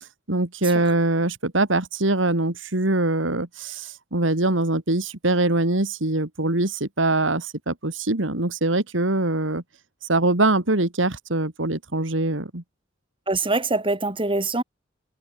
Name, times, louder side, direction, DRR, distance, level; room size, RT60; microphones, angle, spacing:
voice 1, 0.3-9.6 10.1-12.6, right 2 dB, 80° right, 2.6 m, -23 dB
voice 2, 13.3-14.6, right 2 dB, 25° right, 3.9 m, -24 dB
head